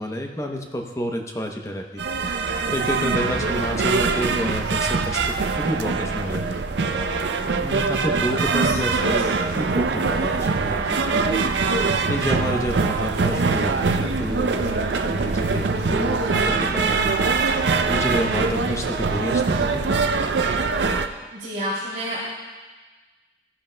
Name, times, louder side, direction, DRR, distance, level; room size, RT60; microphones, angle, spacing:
voice 1, 0.0-2.0 2.4-6.6 7.6-9.3 9.6-11.5 12.1-15.6 15.9-16.4 16.7-19.8, equal, 15° left, 2 dB, 0.7 m, -29 dB
sound 1, 2.0-21.1, right 4 dB, 75° right, 0.5 m, -23 dB
voice 2, 3.1-3.8 8.6-8.7 9.0-9.1 16.2-16.8 21.3-22.2, equal, 40° right, -10 dB, 2.7 m, -32 dB
14.0 x 10.5 x 2.2 m, 1.3 s
head